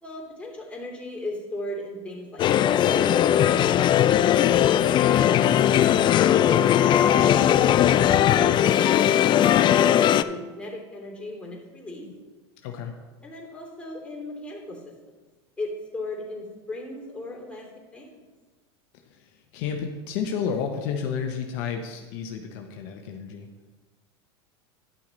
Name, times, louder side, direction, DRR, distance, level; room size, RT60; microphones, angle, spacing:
voice 1, 0.0-4.9 5.8-12.0 13.2-14.8 15.6-17.7 17.9-18.2, left 1 dB, 10° left, -3 dB, 2.9 m, -36 dB
sound 1, 2.4-10.2, left 11 dB, 35° left, 0.4 m, -19 dB
voice 2, 5.1-5.5 12.0-12.1 12.6-13.0 18.9-23.5, left 7 dB, 60° left, 3 dB, 0.9 m, -32 dB
11.0 x 5.8 x 4.0 m, 1.3 s
hypercardioid pair, 95°, 14 cm